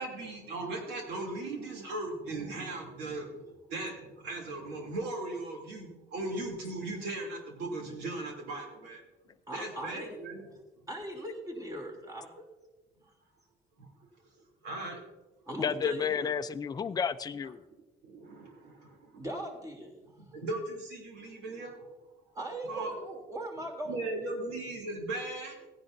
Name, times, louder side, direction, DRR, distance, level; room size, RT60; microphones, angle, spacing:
voice 1, 0.0-9.0 9.5-10.5 13.8-13.9 14.6-15.0 18.0-19.2 20.3-21.9 22.6-23.0 23.8-25.7, right 2 dB, 85° right, 1 dB, 2.9 m, -38 dB
voice 2, 9.5-10.2 10.9-12.5 15.5-16.3 19.1-20.1 22.3-24.0, right 1 dB, 20° right, 1 dB, 3.1 m, -39 dB
voice 3, 15.6-17.6, left 7 dB, 25° left, 10 dB, 0.4 m, -31 dB
16.0 x 10.0 x 2.7 m, 1.1 s
cardioid pair, 110°, 17 cm